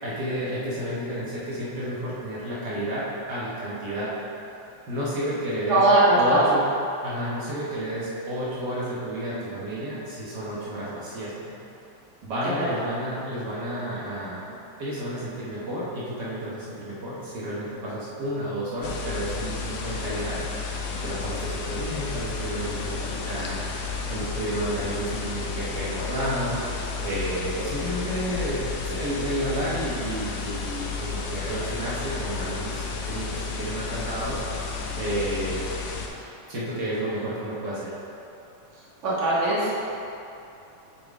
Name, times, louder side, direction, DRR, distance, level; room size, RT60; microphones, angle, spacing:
voice 1, 0.0-4.1 4.9-5.8 6.1-6.7 7.0-11.5 12.2-26.7 27.0-34.4 35.0-35.7 36.5-37.9, right 1 dB, 70° right, -8 dB, 1.0 m, -31 dB
voice 2, 5.7-6.5 12.4-12.5 39.0-39.8, right 1 dB, 40° right, -8 dB, 1.0 m, -20 dB
sound 1, 18.8-36.1, left 4 dB, 85° left, 2.0 m, -32 dB
9.4 x 3.8 x 3.6 m, 2.7 s
omnidirectional pair, 3.5 m